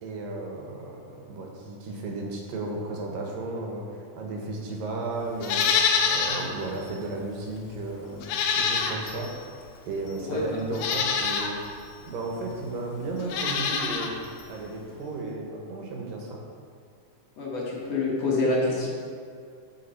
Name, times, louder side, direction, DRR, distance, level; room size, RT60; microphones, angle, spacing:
voice 1, 0.0-5.6 6.0-9.3 9.9-11.6 12.1-14.2 14.5-16.4, right 2 dB, 85° right, 0 dB, 3.0 m, -34 dB
Livestock farm animals working animals, 5.4-6.5 6.9-7.0 8.2-9.3 10.1-10.2 10.7-11.5 13.2-14.1 14.4-14.5, left 6 dB, 90° left, 2.5 m, -25 dB
voice 2, 17.4-18.9, left 2 dB, 55° left, -4 dB, 2.4 m, -26 dB
11.5 x 6.3 x 4.4 m, 2.3 s
omnidirectional pair, 3.8 m